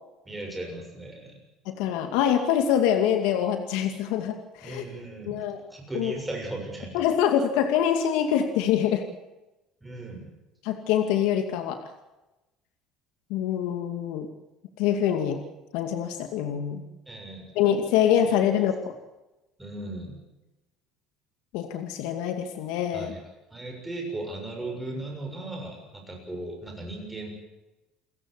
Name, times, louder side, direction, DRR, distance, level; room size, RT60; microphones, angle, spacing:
voice 1, 0.2-1.4 4.6-5.4 5.7-7.0 9.8-10.3 17.1-17.5 18.2-18.4 19.6-20.2 22.9-23.2 23.5-27.3, right 2 dB, 5° right, 1 dB, 6.9 m, -37 dB
voice 2, 1.7-4.8 5.3-5.6 5.9-6.1 6.9-9.0 10.6-11.8 13.3-14.3 14.8-15.4 15.7-16.8 17.5-18.9 21.5-23.1, left 9 dB, 80° left, 6 dB, 2.4 m, -25 dB
29.0 x 14.5 x 8.4 m, 1.0 s
cardioid pair, 155°, 0 cm